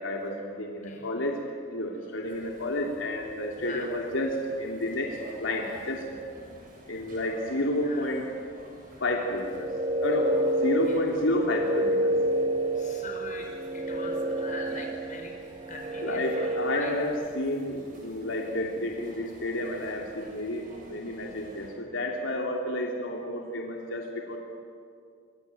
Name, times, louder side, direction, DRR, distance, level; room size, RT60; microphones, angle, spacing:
voice 1, 0.0-1.4 1.7-6.1 6.9-8.3 9.0-9.7 10.0-10.3 10.6-12.1 16.0-24.4, left 1 dB, 80° left, 0 dB, 3.0 m, -30 dB
sound 1, 2.2-21.7, right 1 dB, 45° right, 7.8 m, -50 dB
voice 2, 3.6-3.9 7.8-8.1 10.4-10.5 10.9-11.0 12.7-13.5 13.7-15.3 15.7-16.9, left 3 dB, 40° left, 2 dB, 5.6 m, -42 dB
sound 2, 9.4-17.3, right 1 dB, 30° right, 1.5 m, -29 dB
25.5 x 25.0 x 9.2 m, 2.2 s
head